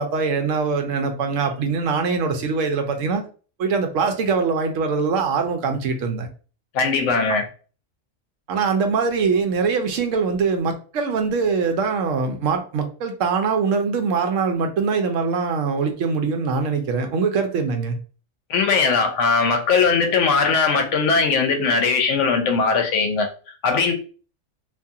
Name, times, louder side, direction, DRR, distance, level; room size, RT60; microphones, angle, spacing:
voice 1, 0.0-3.2 3.6-6.3 8.5-18.0, right 5 dB, 80° right, 0.9 m, -22 dB
voice 2, 6.7-7.4 18.5-23.3 23.6-23.9, left 4 dB, 75° left, 0.9 m, -19 dB
2.6 x 2.4 x 2.7 m
omnidirectional pair, 1.3 m